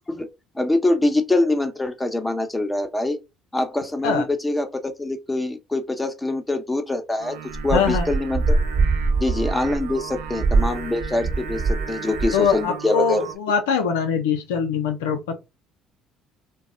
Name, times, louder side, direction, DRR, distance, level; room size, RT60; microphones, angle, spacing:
voice 1, 0.5-3.2 3.5-7.4 7.6-8.6 9.2-13.3, left 2 dB, 15° left, 0.8 m, -24 dB
Singing, 7.2-13.4, right 7 dB, 80° right, 0.5 m, -36 dB
sound 1, 7.6-11.9 12.1-12.5, right 3 dB, 35° right, 0.8 m, -23 dB
voice 2, 7.7-8.1 12.3-15.3, left 6 dB, 85° left, 0.5 m, -22 dB
2.3 x 2.0 x 3.6 m
hypercardioid pair, 60°, 0 cm